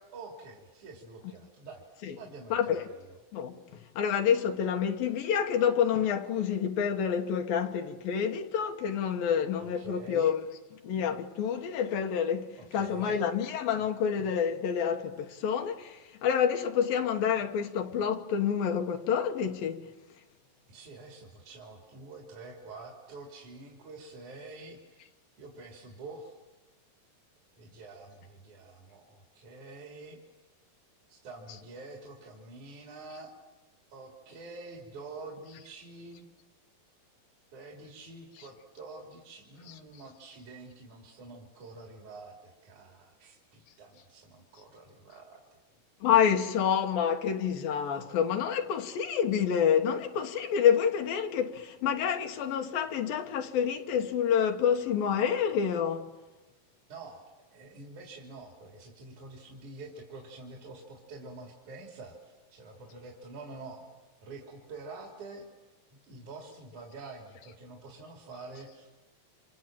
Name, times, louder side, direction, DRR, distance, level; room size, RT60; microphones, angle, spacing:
voice 1, 0.0-1.8 2.2-3.1 9.6-10.3 12.6-13.2 20.7-25.0 25.4-26.4 27.6-30.2 31.1-33.3 33.9-36.3 37.5-45.6 56.9-63.8 64.2-65.5 66.1-69.0, right 3 dB, 55° right, 4.3 m, -47 dB
voice 2, 2.5-2.9 3.3-3.6 4.0-10.4 10.7-19.9 31.5-31.6 39.7-39.8 46.0-56.1, left 8 dB, 80° left, 3.2 m, -28 dB
29.0 x 27.0 x 7.5 m
omnidirectional pair, 4.1 m